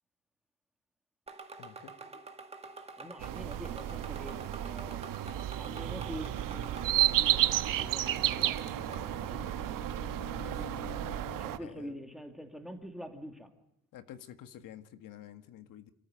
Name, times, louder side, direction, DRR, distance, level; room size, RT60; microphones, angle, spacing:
sound 1, 1.3-9.2, right 3 dB, 20° right, 1.9 m, -48 dB
voice 1, 1.6-1.9 10.4-10.9 11.6-12.0 13.9-15.9, left 11 dB, 80° left, 10 dB, 1.7 m, -50 dB
voice 2, 3.0-5.0 5.6-9.8 11.4-13.5, equal, ahead, 6 dB, 2.2 m, -46 dB
sound 2, 3.2-11.6, right 13 dB, 85° right, 1.1 m, -32 dB
Bowed string instrument, 7.7-12.1, left 9 dB, 40° left, 1.1 m, -49 dB
27.0 x 14.0 x 8.8 m, 0.82 s
cardioid pair, 170°, 32 cm